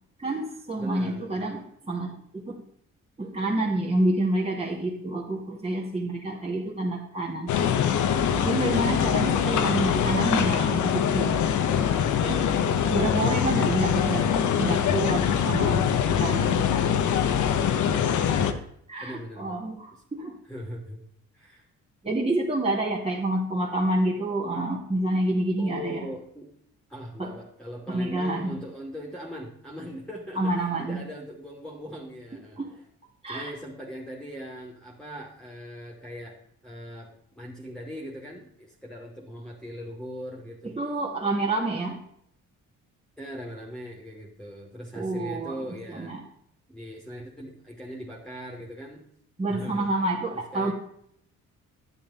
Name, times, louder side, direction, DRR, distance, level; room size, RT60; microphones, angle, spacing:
voice 1, 0.2-2.6 3.2-7.5 8.4-11.4 12.2-12.5 12.9-16.7 18.9-20.4 22.0-26.1 27.2-27.3 27.9-28.6 30.4-31.0 32.6-32.7 33.2-33.5 40.6-42.0 44.9-46.2 49.4-50.7, right 2 dB, 20° right, -2 dB, 2.6 m, -28 dB
voice 2, 0.7-1.6 19.0-19.6 20.5-21.0 21.3-21.6 25.6-26.5 26.9-32.6 33.3-37.1 37.4-40.8 43.2-46.1 46.7-49.1 49.5-49.9 50.3-50.7, equal, ahead, -3 dB, 2.7 m, -40 dB
sound 1, 7.5-18.5, left 8 dB, 75° left, 1.2 m, -23 dB
11.0 x 9.8 x 4.3 m, 0.69 s
cardioid pair, 90°, 30 cm